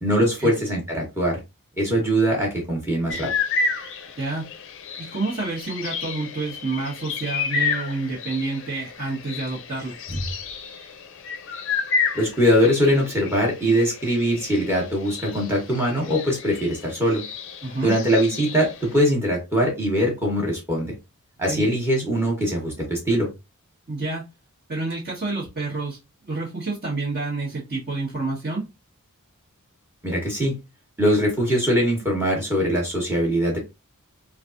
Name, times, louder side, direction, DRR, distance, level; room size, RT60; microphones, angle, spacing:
voice 1, 0.0-1.4 1.8-3.3 12.1-17.2 17.8-20.9 21.4-23.3 30.0-30.6 31.0-33.6, equal, 10° right, -2 dB, 1.0 m, -22 dB
sound 1, 3.1-19.1, left 5 dB, 60° left, 0.4 m, -31 dB
voice 2, 5.0-9.9 17.6-17.9 21.5-21.7 23.9-24.2 24.7-28.6, right 3 dB, 45° right, -9 dB, 1.3 m, -29 dB
3.3 x 2.4 x 2.5 m, 0.25 s
head